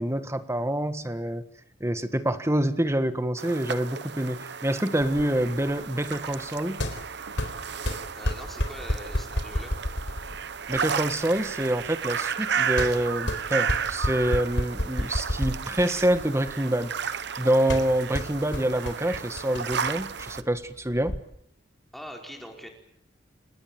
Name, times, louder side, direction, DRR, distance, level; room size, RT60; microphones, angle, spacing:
voice 1, 0.0-1.4 1.8-6.8 10.7-21.2, right 1 dB, 15° right, 10 dB, 1.5 m, -26 dB
sound 1, 3.4-20.4, right 7 dB, 65° right, 1.0 m, -33 dB
sound 2, 5.0-21.2, left 1 dB, 90° left, 4.3 m, -33 dB
voice 2, 8.1-9.7 21.9-22.7, equal, ahead, 1 dB, 4.8 m, -42 dB
29.0 x 19.5 x 7.7 m, 0.72 s
head